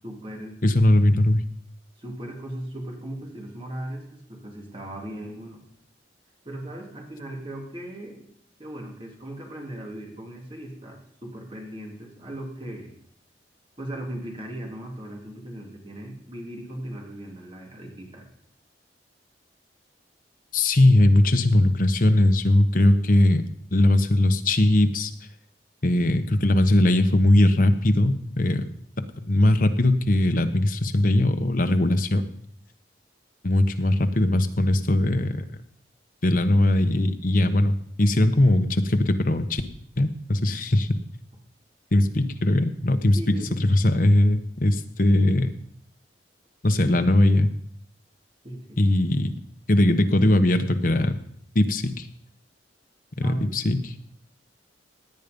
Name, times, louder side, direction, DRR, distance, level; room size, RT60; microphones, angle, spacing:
voice 1, 0.0-0.6 2.0-5.6 6.4-8.3 8.6-12.9 13.8-18.3 43.1-44.0 48.4-48.8 53.2-53.8, right 1 dB, 30° right, 0 dB, 3.0 m, -37 dB
voice 2, 0.6-1.4 20.5-23.4 23.7-25.1 25.8-28.7 29.2-32.2 33.4-35.4 36.2-39.6 40.0-40.9 41.9-45.5 46.6-47.5 48.8-49.3 49.7-51.1 51.5-52.1 53.2-53.8, left 1 dB, 50° left, 8 dB, 1.1 m, -20 dB
17.5 x 9.6 x 5.3 m, 0.67 s
head